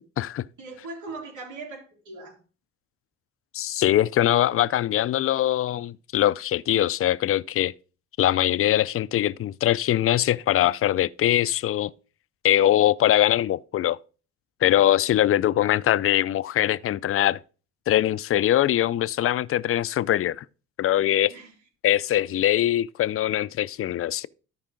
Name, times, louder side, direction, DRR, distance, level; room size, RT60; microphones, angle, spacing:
voice 1, 0.6-2.4 21.2-21.5, right 3 dB, 80° right, 4.0 m, -39 dB
voice 2, 3.5-7.7 8.2-11.9 12.4-14.0 14.6-17.4 17.9-20.4 20.8-21.3 21.8-24.3, left 12 dB, 50° left, 0.4 m, -22 dB
13.0 x 4.8 x 3.7 m
cardioid pair, 90°, 30 cm